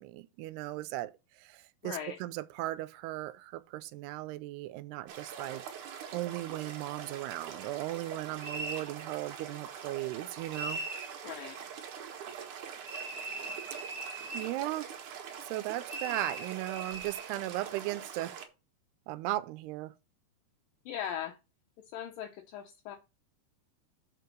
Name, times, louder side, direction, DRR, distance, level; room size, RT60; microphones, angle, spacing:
voice 1, 0.0-5.6 6.1-10.8 14.3-14.9 15.4-18.4 19.1-19.9, right 16 dB, 85° right, 2.5 m, -37 dB
voice 2, 1.8-2.2 11.2-11.6 20.9-21.4 21.9-23.0, left 9 dB, 75° left, 2.1 m, -39 dB
sound 1, 5.1-18.5, right 7 dB, 60° right, 2.3 m, -44 dB
sound 2, 8.4-8.9 10.5-11.1 12.9-14.6 15.9-17.3, right 2 dB, 35° right, 1.9 m, -40 dB
6.8 x 5.1 x 6.1 m
omnidirectional pair, 4.7 m